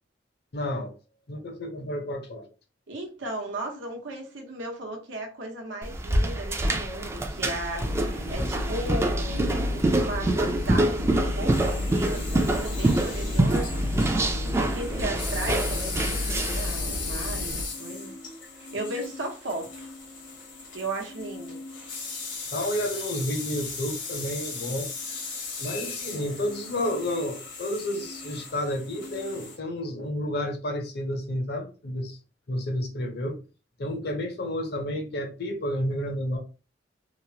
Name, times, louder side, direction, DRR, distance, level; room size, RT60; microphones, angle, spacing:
voice 1, 0.5-0.9 1.3-2.5 22.5-24.9 25.6-32.2 32.5-33.4 33.8-36.4, left 1 dB, 60° left, 0.6 m, -31 dB
voice 2, 2.9-13.7 14.6-18.2 18.6-19.9 20.7-21.6, right 1 dB, 90° right, 0.8 m, -36 dB
sound 1, 5.8-16.7, right 1 dB, 15° right, 0.3 m, -26 dB
sound 2, 7.8-17.6, left 1 dB, 55° right, 0.8 m, -31 dB
sound 3, 11.5-29.6, left 4 dB, 75° left, 1.0 m, -38 dB
2.9 x 2.0 x 2.7 m
head